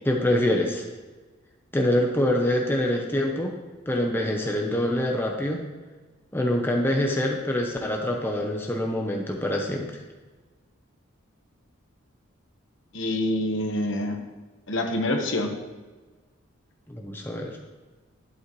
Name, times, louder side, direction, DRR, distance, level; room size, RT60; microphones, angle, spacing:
voice 1, 0.1-0.8 1.7-3.5 3.9-5.7 6.3-9.9 16.9-17.6, left 1 dB, 10° left, 1 dB, 0.7 m, -25 dB
voice 2, 12.9-14.2 14.7-15.5, left 1 dB, 65° left, 4 dB, 1.2 m, -26 dB
11.5 x 8.3 x 3.1 m, 1.3 s
head